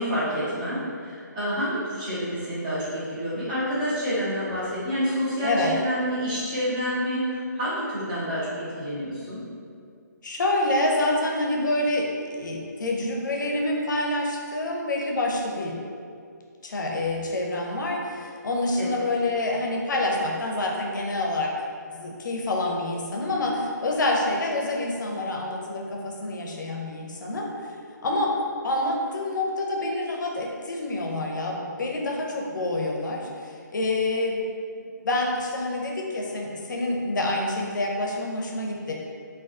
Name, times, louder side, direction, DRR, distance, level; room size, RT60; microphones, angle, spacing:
voice 1, 0.0-9.4 18.8-19.0, equal, 25° right, -10 dB, 0.7 m, -28 dB
voice 2, 5.4-5.7 10.2-15.7 16.6-21.5 21.9-27.5 28.0-28.3 28.6-34.4 35.0-38.9, left 2 dB, 70° left, 0 dB, 0.5 m, -27 dB
2.3 x 2.3 x 2.4 m, 2.3 s
hypercardioid pair, 160°, 10 cm